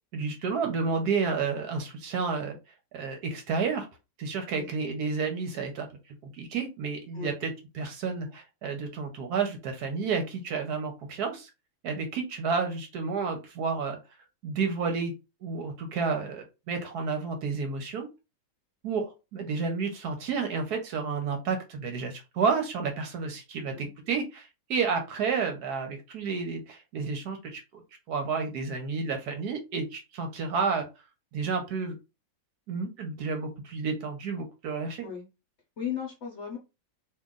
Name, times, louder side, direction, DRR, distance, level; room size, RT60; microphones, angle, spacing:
voice 1, 0.1-2.6 2.9-3.9 4.2-5.9 6.3-11.5 11.8-14.0 14.4-15.1 15.4-18.1 18.8-27.6 28.1-30.9 31.3-31.9 32.7-35.1, right 5 dB, 70° right, 5 dB, 1.1 m, -31 dB
voice 2, 23.5-23.9 35.0-35.2 35.8-36.6, left 8 dB, 55° left, 0 dB, 0.8 m, -36 dB
2.9 x 2.5 x 3.6 m, 0.27 s
omnidirectional pair, 2.0 m